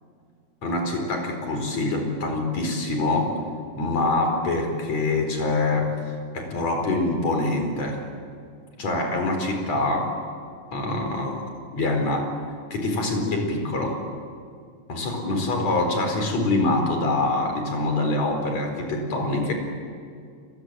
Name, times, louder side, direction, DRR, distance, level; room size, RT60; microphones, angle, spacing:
voice 1, 0.6-3.4 3.8-6.0 6.3-8.1 8.8-10.2 10.7-11.5 11.7-12.3 12.7-14.0 14.9-19.5, left 2 dB, 55° left, 4 dB, 5.5 m, -25 dB
30.0 x 22.0 x 7.7 m, 2.2 s
omnidirectional pair, 3.7 m